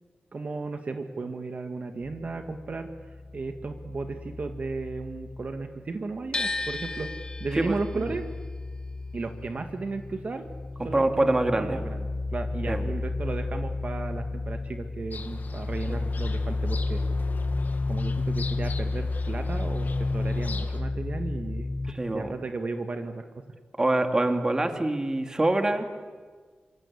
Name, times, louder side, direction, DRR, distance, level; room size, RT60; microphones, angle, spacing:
voice 1, 0.3-2.9 3.3-7.1 7.4-8.2 9.1-10.4 10.8-11.3 11.5-17.0 17.9-23.2, right 3 dB, 45° right, 6 dB, 1.9 m, -34 dB
sound 1, 2.0-5.8 6.1-21.9, left 3 dB, 10° left, 2.1 m, -32 dB
sound 2, 6.3-12.4 12.6-13.9, left 2 dB, 25° left, 1.9 m, -37 dB
voice 2, 7.6-8.1 10.9-11.8 12.7-12.9 15.9-16.1 21.9-22.3 23.8-25.9, right 2 dB, 20° right, 6 dB, 2.4 m, -25 dB
sound 3, 15.1-20.8, left 4 dB, 65° left, 2.0 m, -44 dB
27.5 x 25.5 x 8.6 m, 1.5 s
wide cardioid pair, 160°, 3 cm